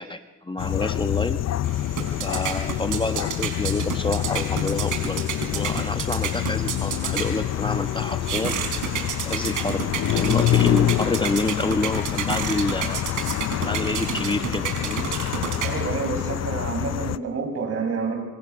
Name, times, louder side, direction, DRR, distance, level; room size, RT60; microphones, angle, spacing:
voice 1, 0.0-1.4 2.2-5.2 5.5-8.6 9.2-13.0 13.6-15.1, left 2 dB, 15° left, 8 dB, 1.2 m, -28 dB
sound 1, 0.6-17.2, left 12 dB, 60° left, 0.8 m, -26 dB
sound 2, 1.6-16.1, right 8 dB, 85° right, 4.8 m, -31 dB
voice 2, 15.6-18.2, right 4 dB, 50° right, 3 dB, 7.7 m, -28 dB
26.5 x 25.5 x 6.2 m, 1.1 s
cardioid pair, 90°, 30 cm